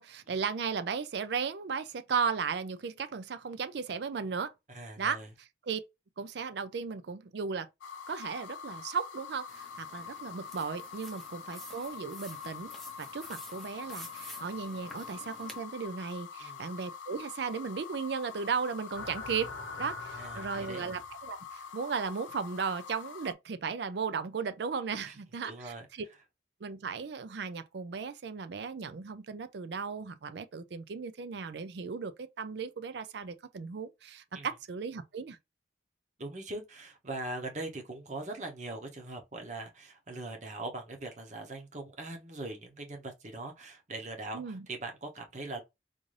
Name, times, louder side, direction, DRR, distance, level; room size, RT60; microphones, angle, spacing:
voice 1, 0.0-4.5 5.0-5.8 6.2-7.7 8.1-19.5 19.8-26.1 26.6-35.4 44.3-44.7, right 5 dB, 65° right, 0.4 m, -36 dB
voice 2, 4.7-5.3 16.4-16.7 20.2-20.9 25.0-25.2 25.4-25.9 34.3-34.5 36.2-45.6, right 2 dB, 40° right, 0.8 m, -41 dB
sound 1, 7.8-23.3, left 7 dB, 90° left, 0.4 m, -45 dB
sound 2, 9.5-15.6, left 1 dB, ahead, 0.6 m, -50 dB
sound 3, 18.9-21.3, left 3 dB, 70° left, 0.8 m, -43 dB
3.8 x 2.5 x 3.2 m
head